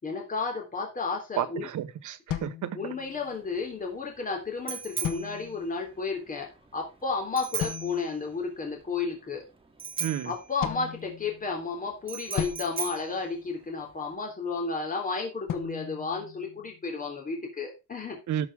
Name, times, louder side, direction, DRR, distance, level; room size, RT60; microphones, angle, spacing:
voice 1, 0.0-1.7 2.7-9.4 10.2-18.2, left 4 dB, 20° left, 3.5 m, -32 dB
voice 2, 1.4-2.9 10.0-10.3 18.3-18.5, right 11 dB, 50° right, 1.2 m, -31 dB
sound 1, 2.3-3.4 5.0-5.8 7.6-8.3 10.6-11.7 12.4-13.8 15.5-17.0, left 10 dB, 60° left, 1.4 m, -37 dB
Bicycle bell, 3.0-14.1, right 6 dB, 15° right, 2.4 m, -40 dB
12.5 x 6.1 x 3.6 m
cardioid pair, 160°, 37 cm